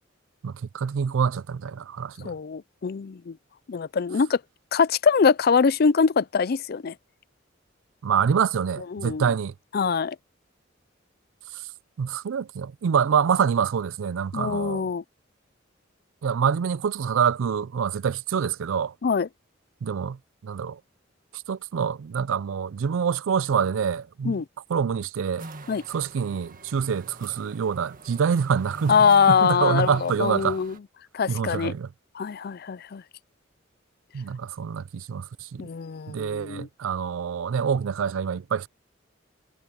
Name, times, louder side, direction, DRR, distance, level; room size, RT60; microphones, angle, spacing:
voice 1, 0.4-2.3 8.0-9.5 11.5-11.6 12.0-14.9 16.2-18.9 19.8-20.8 21.3-24.4 24.7-25.5 25.9-29.0 29.3-30.6 31.3-31.9 34.1-35.7 36.1-38.7, right 7 dB, 90° right, 0.4 m, -26 dB
voice 2, 2.2-3.4 3.7-4.4 4.7-6.9 8.9-9.3 9.7-10.2 14.3-15.0 19.0-19.3 24.2-24.4 25.7-25.8 28.9-30.7 31.1-31.7 32.1-33.0 35.6-36.7, left 6 dB, 50° left, 0.4 m, -23 dB
sound 1, 25.4-30.8, right 3 dB, 45° right, 1.8 m, -44 dB
head